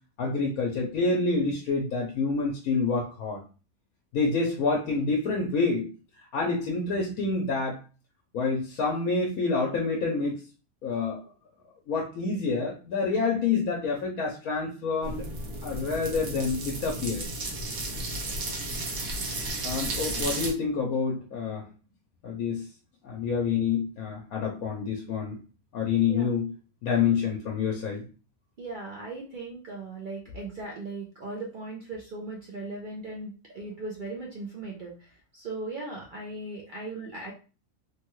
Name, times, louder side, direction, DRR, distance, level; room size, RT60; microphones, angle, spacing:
voice 1, 0.2-3.4 4.1-5.9 6.3-7.8 8.3-10.4 10.8-11.2 11.9-15.3 15.6-17.2 19.6-21.6 22.2-22.7 23.0-25.4 25.7-26.5 26.8-28.1, left 4 dB, 80° left, -1 dB, 1.1 m, -27 dB
sound 1, 15.0-20.5, right 2 dB, 90° right, 1.3 m, -33 dB
voice 2, 28.6-37.3, right 2 dB, 60° right, -2 dB, 0.5 m, -38 dB
3.3 x 2.2 x 3.0 m, 0.35 s
omnidirectional pair, 1.5 m